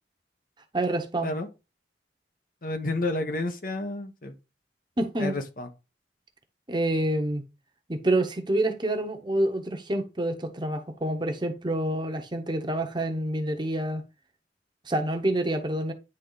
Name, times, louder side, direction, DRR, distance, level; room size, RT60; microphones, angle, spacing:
voice 1, 0.7-1.4 5.0-5.3 6.7-7.4 7.9-14.0 14.9-15.9, right 1 dB, 25° right, 1.0 m, -27 dB
voice 2, 2.6-4.3 5.2-5.7, left 2 dB, 50° left, 1.1 m, -30 dB
9.9 x 3.7 x 4.0 m
head